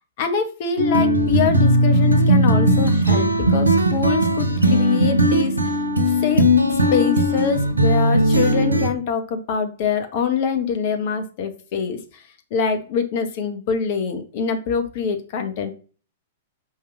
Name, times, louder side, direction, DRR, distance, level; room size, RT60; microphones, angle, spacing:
voice 1, 0.2-5.5 6.1-12.2 12.5-15.7, left 6 dB, 45° left, 7 dB, 1.9 m, -24 dB
sound 1, 0.8-8.9, equal, 85° right, 1.4 m, -18 dB
6.6 x 5.5 x 6.1 m, 0.37 s
figure-of-eight pair, 105°, 0 cm